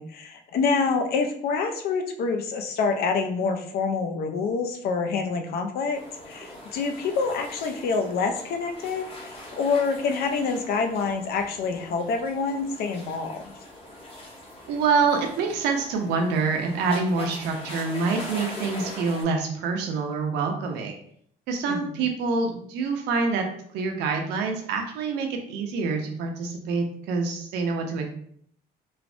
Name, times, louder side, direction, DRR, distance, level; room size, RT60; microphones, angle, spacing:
voice 1, 0.0-13.6 21.7-22.0, left 4 dB, 65° left, 5 dB, 0.4 m, -27 dB
sound 1, 5.9-19.2, left 1 dB, 35° left, 0.8 m, -42 dB
voice 2, 14.7-21.0 21.5-23.4 23.7-28.1, right 4 dB, 85° right, 3 dB, 0.6 m, -26 dB
3.1 x 2.0 x 2.5 m, 0.63 s
cardioid pair, 110°, 17 cm